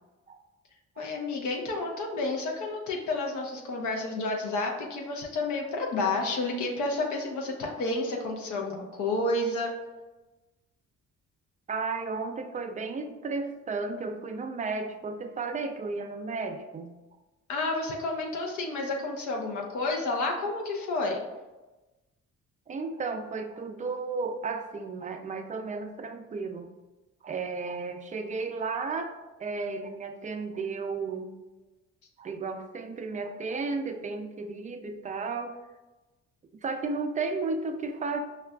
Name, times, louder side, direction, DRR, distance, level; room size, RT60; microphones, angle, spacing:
voice 1, 1.0-9.7 17.5-21.2, left 2 dB, 75° left, 0 dB, 0.6 m, -30 dB
voice 2, 11.7-17.0 22.7-26.7 27.2-29.1 29.4-31.3 32.2-35.6 36.5-38.2, right 4 dB, 25° right, 7 dB, 0.3 m, -33 dB
5.4 x 2.4 x 2.2 m, 1.1 s
cardioid pair, 90°, 30 cm